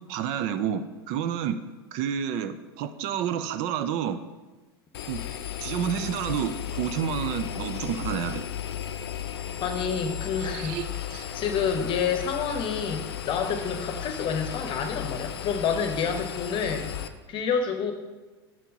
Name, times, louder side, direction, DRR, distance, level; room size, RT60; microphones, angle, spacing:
voice 1, 0.1-1.6 1.9-4.2 5.1-5.2 5.6-8.5 10.4-11.3, right 9 dB, 50° right, 10 dB, 0.5 m, -30 dB
Engine, 4.9-17.1, left 10 dB, 75° left, 0.5 m, -35 dB
voice 2, 9.6-10.8 11.3-16.9 17.3-17.9, left 6 dB, 40° left, 6 dB, 1.0 m, -28 dB
5.8 x 4.5 x 5.2 m, 1.2 s
hypercardioid pair, 95°, 13 cm